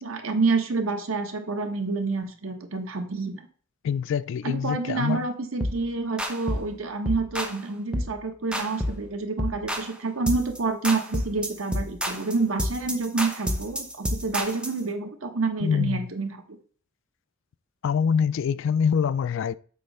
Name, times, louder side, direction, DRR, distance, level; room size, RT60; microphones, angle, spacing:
voice 1, 0.0-3.5 4.4-16.3, right 3 dB, 80° right, 1.2 m, -28 dB
voice 2, 3.8-5.3 15.6-16.1 17.8-19.6, left 7 dB, 65° left, 0.3 m, -25 dB
sound 1, 5.6-5.8 6.2-6.7 7.1-7.6 7.9-8.2 8.5-9.1 9.4-9.9 10.3-10.6 10.8-14.8, equal, 5° right, 0.8 m, -29 dB
7.7 x 3.1 x 5.5 m
head